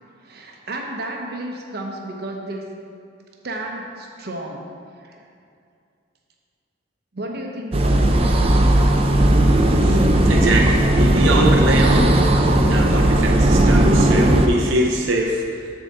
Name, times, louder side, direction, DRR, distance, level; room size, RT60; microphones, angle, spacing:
voice 1, 0.2-2.7 3.4-4.7 5.0-5.2 7.1-8.2, right 1 dB, 55° right, 1 dB, 0.9 m, -32 dB
sound 1, 7.7-14.5, right 1 dB, 30° right, 0.5 m, -16 dB
voice 2, 9.8-12.4 12.7-15.7, right 2 dB, 80° right, 0 dB, 0.7 m, -23 dB
7.4 x 4.0 x 6.7 m, 2.4 s
head